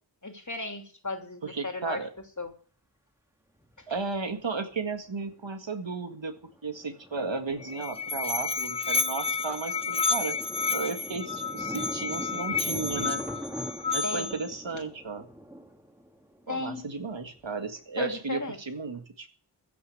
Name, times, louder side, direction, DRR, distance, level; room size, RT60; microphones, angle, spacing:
voice 1, 0.2-2.0 2.4-2.5 14.0-14.3 16.5-16.8 18.0-18.6, left 3 dB, 40° left, 5 dB, 2.8 m, -35 dB
voice 2, 1.4-2.1 3.9-6.4 6.6-10.4 10.7-13.2 13.9-15.3 16.5-19.4, right 4 dB, 75° right, 7 dB, 2.0 m, -34 dB
Thunder, 2.2-2.3 3.6-4.4 4.7-4.8 5.2-5.5 5.8-18.2, equal, 5° right, 2.4 m, -43 dB
Musical instrument, 7.5-14.5, left 4 dB, 10° left, 1.1 m, -30 dB
15.5 x 6.8 x 9.1 m, 0.43 s
wide cardioid pair, 45°, 45 cm